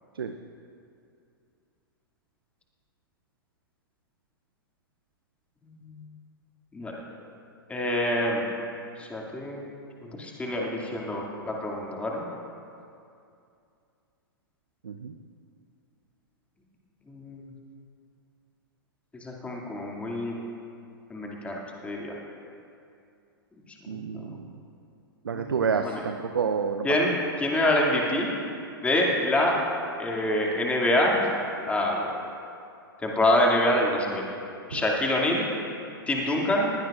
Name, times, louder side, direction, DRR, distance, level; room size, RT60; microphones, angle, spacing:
voice 1, 7.7-8.5 9.0-9.6 10.2-12.2 17.1-17.4 19.2-20.3 21.1-22.1 23.9-24.2 25.3-26.0 26.8-27.1 27.4-28.3 28.8-29.5 30.0-31.2 31.6-32.1 33.0-34.2 34.7-35.5 36.1-36.7, left 1 dB, 10° left, -2 dB, 2.5 m, -26 dB
voice 2, 23.9-24.4 25.3-26.9 34.7-34.8, right 6 dB, 70° right, 7 dB, 0.7 m, -29 dB
21.5 x 16.5 x 2.5 m, 2.5 s
figure-of-eight pair, 105°, 12 cm